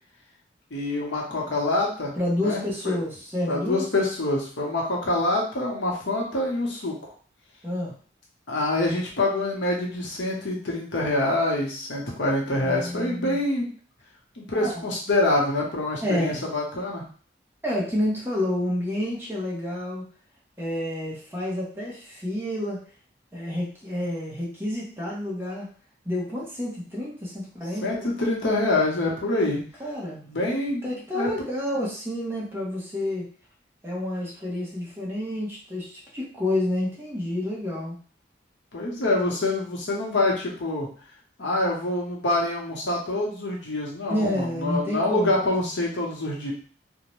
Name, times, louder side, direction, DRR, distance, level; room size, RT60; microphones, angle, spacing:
voice 1, 0.7-2.1 2.4-3.0 3.5-7.1 8.5-13.7 14.4-17.0 27.8-29.7 30.2-31.3 38.7-40.9 41.4-46.5, left 2 dB, 75° left, -2 dB, 0.8 m, -26 dB
voice 2, 2.2-3.8 7.6-7.9 12.6-13.4 14.6-14.7 16.0-16.4 17.6-20.0 20.6-22.8 23.3-25.7 26.1-27.8 29.8-30.3 30.8-33.3 33.8-37.9 44.1-45.4, left 1 dB, 10° right, -5 dB, 0.7 m, -29 dB
2.6 x 2.1 x 3.0 m, 0.42 s
head